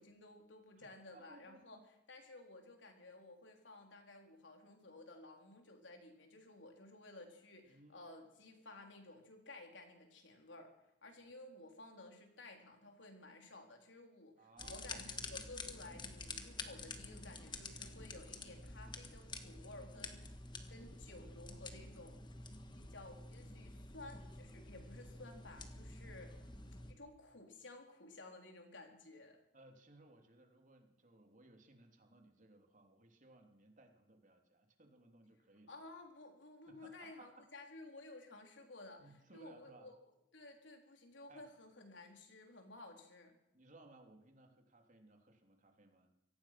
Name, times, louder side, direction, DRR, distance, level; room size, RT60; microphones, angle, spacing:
voice 1, 0.0-1.8 2.1-10.7 11.0-20.4 20.7-22.2 22.7-26.3 26.9-29.4 35.7-40.0 40.3-43.4, left 2 dB, 75° left, 3 dB, 4.0 m, -55 dB
voice 2, 0.8-1.8 7.6-8.1 14.4-14.9 25.7-26.6 29.5-35.7 36.7-37.5 39.0-39.9 41.3-41.4 43.5-46.1, right 2 dB, 45° right, 4 dB, 3.2 m, -62 dB
sound 1, 14.6-26.9, left 3 dB, 25° left, 1.7 m, -49 dB
24.5 x 18.0 x 6.0 m, 0.86 s
head